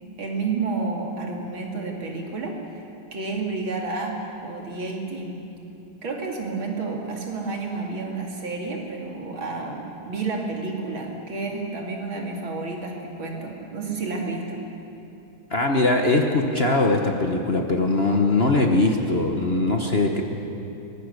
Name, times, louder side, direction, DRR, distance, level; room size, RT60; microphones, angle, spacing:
voice 1, 0.2-2.6 3.1-5.4 6.0-14.6, right 3 dB, 75° right, 0 dB, 3.5 m, -30 dB
voice 2, 15.5-20.2, left 2 dB, 35° left, 2 dB, 1.3 m, -21 dB
23.5 x 19.0 x 6.7 m, 2.8 s
omnidirectional pair, 2.2 m